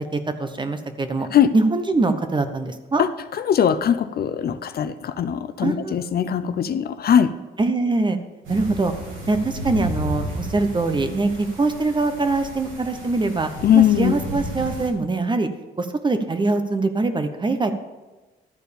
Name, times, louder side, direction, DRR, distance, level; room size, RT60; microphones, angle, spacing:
voice 1, 0.0-1.3 1.5-3.0 5.6-6.2 7.6-8.2 8.5-8.9 9.3-13.5 13.7-15.5 15.8-17.7, right 3 dB, 25° right, 8 dB, 0.9 m, -23 dB
voice 2, 3.4-7.3 13.6-14.2, left 9 dB, 50° left, 12 dB, 0.5 m, -20 dB
sound 1, 8.4-14.9, equal, 85° right, 3.2 m, -33 dB
12.0 x 4.5 x 7.0 m, 1.2 s
cardioid pair, 90°, 20 cm